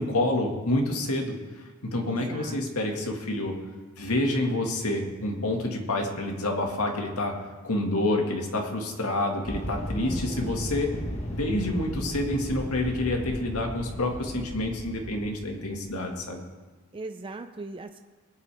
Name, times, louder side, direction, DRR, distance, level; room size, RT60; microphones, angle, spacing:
voice 1, 0.0-1.4 1.8-3.6 4.0-7.3 7.6-10.9 11.3-16.4, left 1 dB, 85° left, 2 dB, 1.9 m, -28 dB
voice 2, 2.0-2.6 10.1-10.6 16.9-18.0, right 2 dB, 25° right, 7 dB, 0.5 m, -39 dB
sound 1, 9.5-15.9, equal, 30° left, 1.3 m, -35 dB
20.0 x 8.6 x 3.5 m, 1.3 s
head